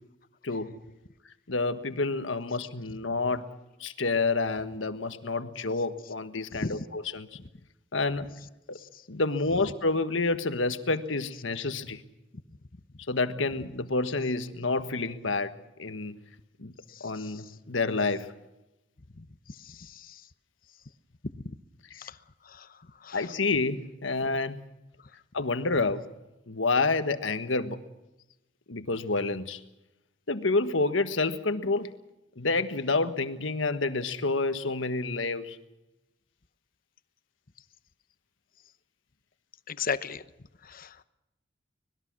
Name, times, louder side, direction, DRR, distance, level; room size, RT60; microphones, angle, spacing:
voice 1, 0.4-0.8 1.5-3.5 3.8-7.3 7.9-8.3 8.7-8.8 9.1-12.0 13.1-15.5 15.8-16.2 16.6-16.7 17.0-18.3 23.1-24.6 25.3-26.0 26.5-27.8 28.7-29.6 30.3-31.9 32.4-35.6, left 3 dB, 80° left, 1.5 m, -28 dB
voice 2, 16.9-17.4 19.2-20.2 21.3-21.5 22.0-22.2 22.5-22.7 23.0-23.3 39.7-40.2 40.6-41.0, left 5 dB, 50° left, 0.9 m, -37 dB
25.0 x 20.5 x 6.2 m
head